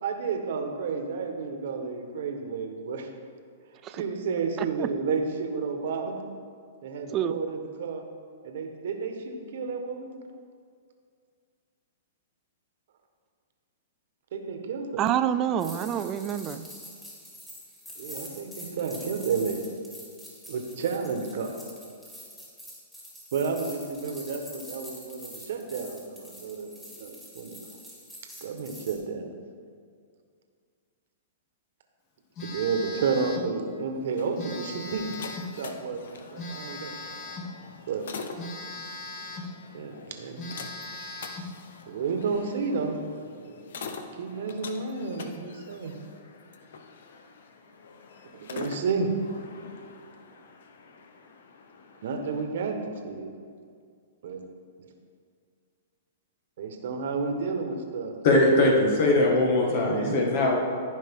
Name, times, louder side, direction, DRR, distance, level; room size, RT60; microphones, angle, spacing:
voice 1, 0.0-3.1 3.9-6.1 6.8-8.1 8.4-10.1 14.3-15.0 18.0-19.7 20.5-21.6 23.3-26.7 27.0-27.7 28.4-29.3 32.4-35.2 35.6-36.9 37.9-38.1 39.7-40.5 41.9-43.0 43.3-45.9 48.3-49.1 52.0-52.8 53.0-53.3 54.2-54.4 56.6-58.2 59.6-60.4, right 5 dB, 65° right, 4 dB, 1.3 m, -31 dB
voice 2, 4.6-4.9 7.1-7.4 15.0-16.7, right 9 dB, 30° right, 11 dB, 0.4 m, -27 dB
sound 1, 15.6-29.0, equal, 5° left, 2.4 m, -46 dB
Telephone, 32.4-33.5 34.4-35.6 36.4-37.6 38.4-39.6 40.0-40.1 40.4-41.6, left 2 dB, 40° left, 1.8 m, -39 dB
sound 2, 33.9-52.5, left 4 dB, 70° left, 0.9 m, -45 dB
voice 3, 58.2-60.6, left 2 dB, 55° left, -1 dB, 1.8 m, -21 dB
14.5 x 5.2 x 3.7 m, 2.2 s
hypercardioid pair, 130°, 0 cm